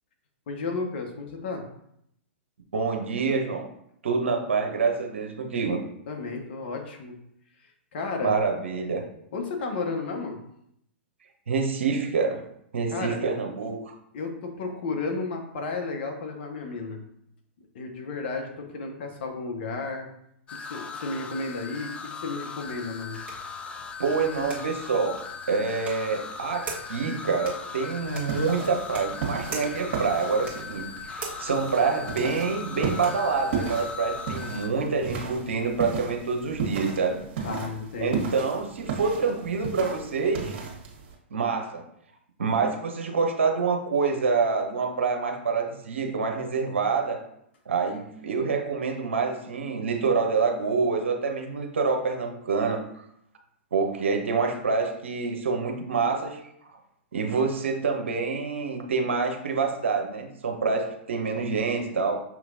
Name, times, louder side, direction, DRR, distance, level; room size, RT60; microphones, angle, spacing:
voice 1, 0.5-1.7 6.1-7.2 7.9-8.4 9.3-10.4 12.9-13.2 14.1-17.0 17.7-20.1 20.6-23.2 37.4-38.3, left 3 dB, 55° left, 3 dB, 0.9 m, -33 dB
voice 2, 2.7-3.7 4.0-5.8 8.2-9.0 11.5-12.4 12.7-13.9 24.0-25.2 25.5-37.2 38.0-40.5 41.3-41.8 42.4-47.2 47.7-52.8 53.7-56.4 57.1-62.2, right 4 dB, 70° right, 3 dB, 0.8 m, -26 dB
sound 1, 20.5-34.7, left 5 dB, 20° left, 0.3 m, -39 dB
sound 2, 22.6-33.3, right 3 dB, 20° right, 1.2 m, -44 dB
sound 3, 28.1-41.1, right 5 dB, 50° right, 1.3 m, -35 dB
6.0 x 3.0 x 2.6 m, 0.74 s
figure-of-eight pair, 110°, 7 cm